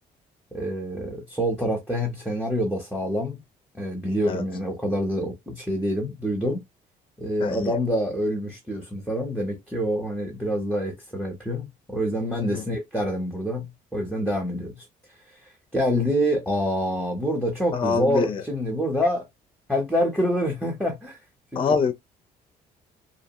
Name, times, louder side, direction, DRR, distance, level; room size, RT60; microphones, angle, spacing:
voice 1, 0.5-3.4 3.7-6.6 7.2-14.7 15.7-19.2 19.7-21.2 21.5-21.8, equal, 5° left, 0.8 m, -26 dB
voice 2, 7.4-7.7 12.5-12.6 17.7-18.4 21.6-21.9, left 5 dB, 30° left, 0.5 m, -24 dB
2.6 x 2.1 x 2.9 m
cardioid pair, 110°, 17 cm